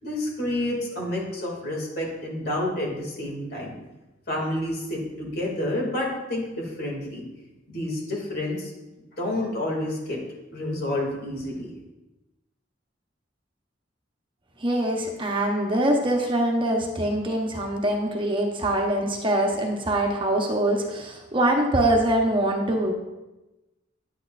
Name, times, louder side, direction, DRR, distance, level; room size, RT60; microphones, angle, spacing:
voice 1, 0.0-3.7 4.3-7.2 7.7-8.7 9.2-10.2 10.5-11.7, left 1 dB, 60° left, -2 dB, 2.4 m, -29 dB
voice 2, 14.6-22.9, right 1 dB, 30° right, 1 dB, 0.9 m, -24 dB
9.5 x 8.5 x 2.5 m, 1.0 s
head